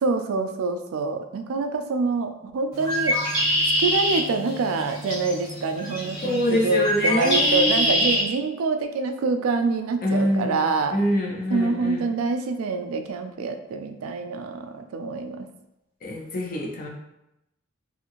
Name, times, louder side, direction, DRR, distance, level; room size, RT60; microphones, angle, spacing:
voice 1, 0.0-3.2 3.8-11.0 11.5-15.5, right 3 dB, 85° right, 6 dB, 0.3 m, -26 dB
Bird, 2.7-8.2, equal, 20° left, 1.1 m, -25 dB
voice 2, 6.2-8.0 10.0-12.0 16.0-16.9, left 1 dB, 45° left, -2 dB, 0.6 m, -25 dB
2.7 x 2.5 x 2.9 m, 0.87 s
head